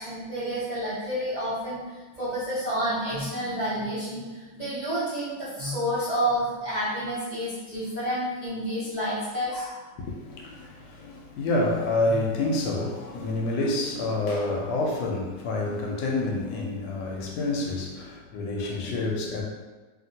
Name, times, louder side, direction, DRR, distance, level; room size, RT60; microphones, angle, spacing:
voice 1, 0.0-9.8 12.1-12.2, equal, 50° right, -12 dB, 0.5 m, -30 dB
voice 2, 10.0-19.4, left 2 dB, 75° left, -1 dB, 1.2 m, -28 dB
2.8 x 2.7 x 2.7 m, 1.3 s
omnidirectional pair, 1.9 m